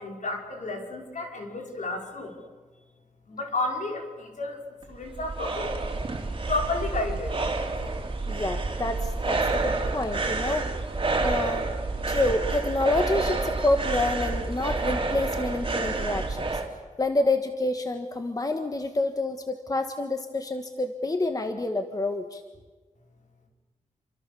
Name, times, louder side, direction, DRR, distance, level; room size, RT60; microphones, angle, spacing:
voice 1, 0.0-2.3 3.3-4.6 4.9-5.7 6.5-7.4 7.8-7.9, left 2 dB, 70° left, 2 dB, 5.2 m, -31 dB
sound 1, 4.8-16.7, right 3 dB, 40° right, 3.1 m, -29 dB
voice 2, 8.3-10.6 11.2-11.7 12.1-16.6 17.0-22.4, left 2 dB, 25° left, 6 dB, 1.5 m, -28 dB
28.5 x 25.0 x 7.0 m, 1.4 s
wide cardioid pair, 150°, 14 cm